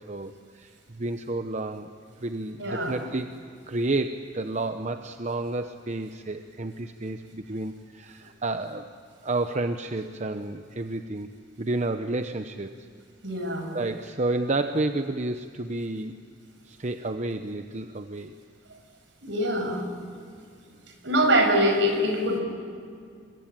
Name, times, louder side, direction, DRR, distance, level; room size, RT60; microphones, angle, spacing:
voice 1, 0.0-1.9 2.2-3.3 3.7-8.9 9.2-11.3 11.6-12.7 13.7-16.1 16.7-18.3, right 2 dB, 40° right, 8 dB, 0.8 m, -30 dB
voice 2, 2.6-3.0 13.2-13.7 19.2-19.8 21.0-22.4, equal, 70° right, 4 dB, 6.0 m, -23 dB
28.5 x 23.0 x 8.9 m, 2.2 s
head